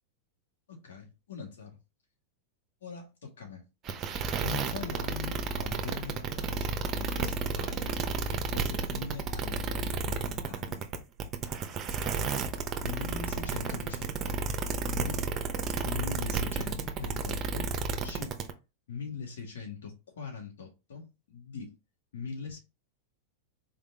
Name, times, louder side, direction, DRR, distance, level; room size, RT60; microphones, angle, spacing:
voice 1, 0.7-1.7 2.8-3.6 4.4-8.0 8.3-10.8 12.2-12.4 12.8-14.4 14.8-15.3 15.8-17.7 18.0-18.4 18.9-21.7 22.1-22.6, left 5 dB, 75° left, 1.9 m, -41 dB
sound 1, 3.8-18.5, right 5 dB, 30° right, 0.7 m, -32 dB
3.9 x 3.4 x 2.8 m
hypercardioid pair, 105°, 0 cm